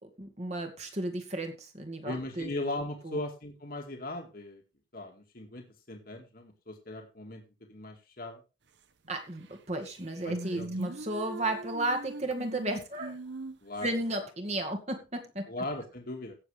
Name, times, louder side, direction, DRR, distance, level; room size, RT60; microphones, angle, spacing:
voice 1, 0.0-2.5 3.0-3.2 9.1-13.1 13.8-15.5, right 1 dB, 35° right, 5 dB, 2.2 m, -34 dB
voice 2, 2.0-4.6 4.9-7.4 7.7-8.4 10.2-10.8 13.6-14.0 15.5-16.3, left 2 dB, 50° left, 3 dB, 2.2 m, -38 dB
sound 1, 9.5-9.6 9.9-13.9, right 2 dB, 60° right, 1.1 m, -40 dB
16.5 x 7.3 x 3.5 m, 0.28 s
head